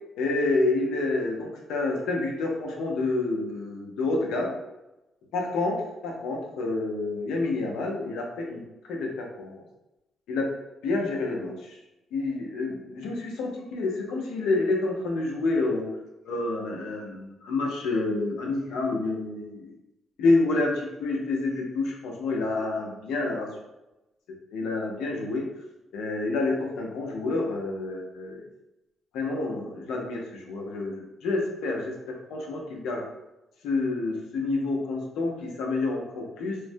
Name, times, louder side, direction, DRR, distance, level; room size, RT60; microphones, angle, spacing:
voice 1, 0.2-4.5 5.3-5.8 6.0-8.6 8.9-9.6 10.3-10.5 10.8-11.8 12.1-15.9 16.3-19.7 20.2-23.5 24.5-25.5 25.9-28.4 29.1-33.0 33.6-36.6, left 3 dB, 85° left, 0 dB, 0.6 m, -28 dB
3.1 x 2.1 x 2.6 m, 0.97 s
cardioid pair, 90°, 0 cm